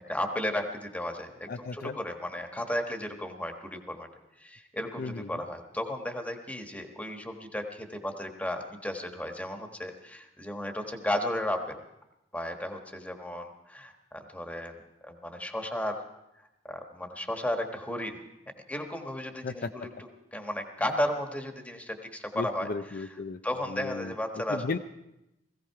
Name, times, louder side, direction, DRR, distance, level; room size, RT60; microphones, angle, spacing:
voice 1, 0.0-4.1 4.4-11.8 12.3-14.7 15.0-16.0 16.7-18.2 18.7-19.9 20.3-22.7 22.9-23.1 23.4-24.6, left 1 dB, 10° left, 4 dB, 1.4 m, -34 dB
voice 2, 1.5-2.0 5.0-5.4 19.4-19.9 22.3-23.4 23.7-24.8, left 3 dB, 55° left, 8 dB, 0.5 m, -35 dB
18.0 x 16.0 x 4.7 m, 0.89 s
head